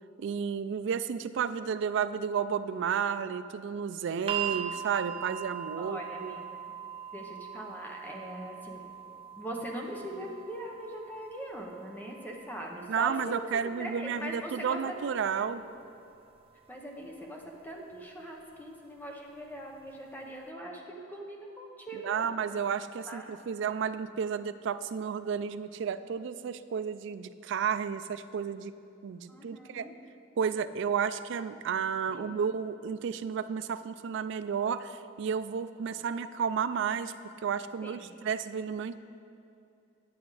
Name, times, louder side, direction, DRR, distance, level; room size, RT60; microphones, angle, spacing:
voice 1, 0.2-6.3 12.9-15.6 21.9-28.7 29.0-29.9 30.4-39.0, right 7 dB, 65° right, 13 dB, 0.3 m, -32 dB
sound 1, 4.3-16.4 17.4-17.5, right 9 dB, 30° right, 0.6 m, -42 dB
voice 2, 5.8-6.8 7.1-8.9 9.4-14.9 15.4-15.7 16.7-22.4 23.1-23.3 29.3-29.9 32.1-32.4 37.8-38.1, right 1 dB, 10° left, 0 dB, 0.8 m, -41 dB
9.5 x 7.0 x 4.8 m, 2.6 s
head